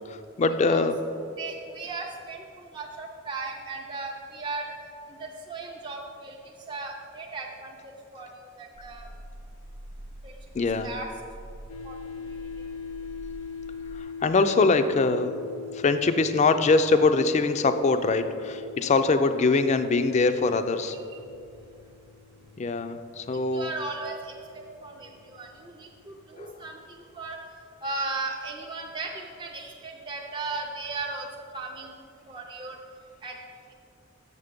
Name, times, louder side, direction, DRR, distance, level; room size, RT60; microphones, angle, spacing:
voice 1, 0.1-1.0 10.5-10.9 13.9-15.3 15.7-21.0 22.6-23.7 26.3-26.6, left 3 dB, 35° left, 10 dB, 0.4 m, -23 dB
voice 2, 1.4-4.7 5.1-6.4 6.7-9.1 10.2-10.3 10.8-11.1 11.8-12.0 20.9-21.2 21.6-21.7 23.5-27.4 27.8-31.3 31.5-32.0 32.3-32.8 33.2-33.4, right 3 dB, 25° right, -1 dB, 0.5 m, -36 dB
sound 1, 8.7-14.0, right 1 dB, 85° right, 0.7 m, -45 dB
sound 2, 11.7-26.9, left 5 dB, 80° left, 0.6 m, -42 dB
6.8 x 6.6 x 5.1 m, 2.5 s
head